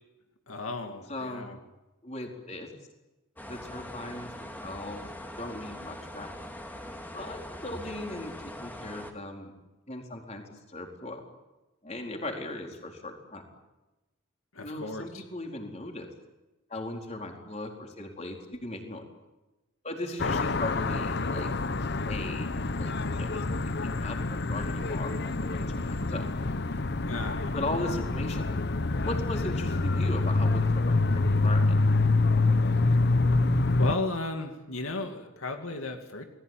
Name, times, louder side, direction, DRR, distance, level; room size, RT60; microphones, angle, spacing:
voice 1, 0.5-1.6 14.5-15.2 27.1-27.6 33.8-36.2, left 2 dB, 85° left, 5 dB, 2.4 m, -35 dB
voice 2, 1.1-1.5 2.0-2.7 3.4-5.1 5.4-6.3 7.1-9.5 9.9-11.2 11.8-13.5 14.6-16.1 16.7-19.0 19.8-21.5 22.1-26.3 27.5-28.6 29.0-31.0 31.3-31.8, left 2 dB, 30° left, 2 dB, 4.3 m, -38 dB
sound 1, 3.4-9.1, left 1 dB, 10° left, 2.6 m, -42 dB
sound 2, 20.2-33.9, left 3 dB, 55° left, 0.9 m, -26 dB
29.0 x 20.0 x 9.2 m, 1.1 s
head